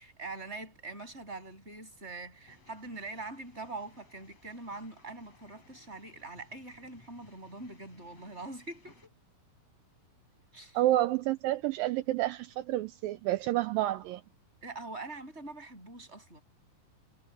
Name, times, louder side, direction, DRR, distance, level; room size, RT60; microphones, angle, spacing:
voice 1, 0.0-9.1 10.5-10.8 14.6-16.4, right 3 dB, 15° right, 7.5 m, -43 dB
sound 1, 2.5-9.1, left 3 dB, 40° left, 8.4 m, -62 dB
voice 2, 10.8-14.2, right 15 dB, 80° right, 2.2 m, -29 dB
omnidirectional pair, 4.5 m